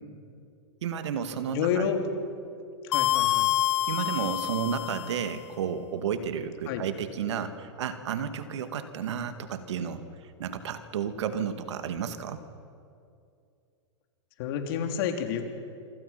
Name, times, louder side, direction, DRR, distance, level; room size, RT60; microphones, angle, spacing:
voice 1, 0.8-1.9 3.9-10.0 10.4-12.4, right 7 dB, 75° right, 9 dB, 2.0 m, -32 dB
voice 2, 1.5-2.0 2.8-3.5 6.6-6.8 14.4-15.5, left 8 dB, 55° left, 4 dB, 3.4 m, -29 dB
sound 1, 2.9-5.3, left 13 dB, 70° left, 0.5 m, -27 dB
27.0 x 25.5 x 5.9 m, 2.5 s
hypercardioid pair, 125°, 15 cm